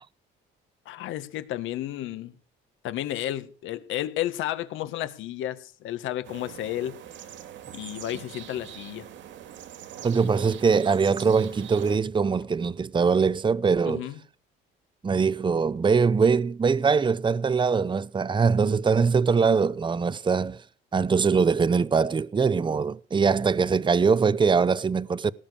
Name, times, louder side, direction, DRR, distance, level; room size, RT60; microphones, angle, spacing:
voice 1, 0.9-2.3 2.8-7.0 7.7-9.1 13.9-14.1, left 13 dB, 80° left, 1.9 m, -32 dB
sound 1, 6.2-12.0, right 10 dB, 70° right, 2.3 m, -42 dB
voice 2, 10.0-14.1 15.0-20.6 20.9-25.3, right 5 dB, 25° right, 0.8 m, -22 dB
18.5 x 6.6 x 7.0 m
cardioid pair, 85°, 20 cm